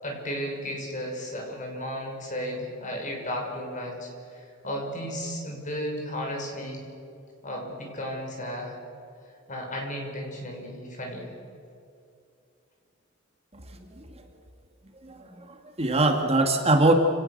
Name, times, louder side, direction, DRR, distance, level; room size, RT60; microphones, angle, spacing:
voice 1, 0.0-6.8 7.4-8.7 9.5-11.3, equal, 40° left, 1 dB, 6.0 m, -34 dB
voice 2, 15.0-16.9, right 2 dB, 30° right, 4 dB, 1.9 m, -23 dB
29.5 x 18.0 x 6.6 m, 2.6 s
head